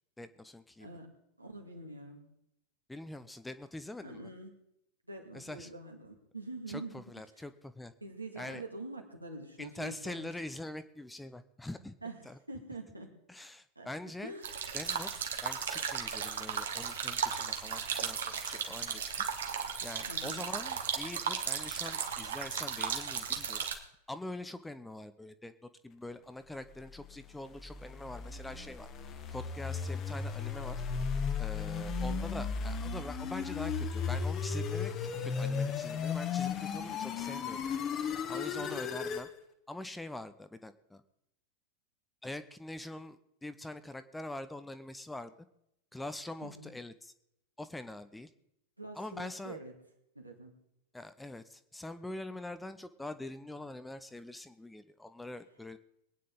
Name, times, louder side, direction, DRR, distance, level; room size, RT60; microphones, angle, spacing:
voice 1, 0.2-0.9 2.9-4.2 5.3-5.7 6.7-7.9 8.4-8.6 9.6-12.0 12.2-12.4 13.3-14.3 14.7-19.1 19.8-23.6 24.1-28.9 29.3-30.8 31.4-34.9 35.2-37.6 38.3-39.3 39.7-41.0 42.2-45.3 45.9-47.1 47.6-48.3 49.0-49.6 50.9-55.8, left 1 dB, 5° left, 11 dB, 0.8 m, -44 dB
voice 2, 0.8-1.1 1.4-2.3 4.0-4.5 5.1-7.1 8.0-10.3 12.0-13.2 13.8-13.9 14.2-14.5 20.1-20.4 31.9-32.2 38.6-38.8 46.4-46.7 48.8-49.7 50.1-50.6, right 2 dB, 85° right, 1 dB, 2.4 m, -45 dB
sound 1, 14.4-23.8, right 7 dB, 65° right, 1.6 m, -35 dB
sound 2, 27.1-39.3, left 6 dB, 30° left, 1.4 m, -35 dB
22.5 x 9.5 x 4.0 m, 0.79 s
figure-of-eight pair, 90°, 0 cm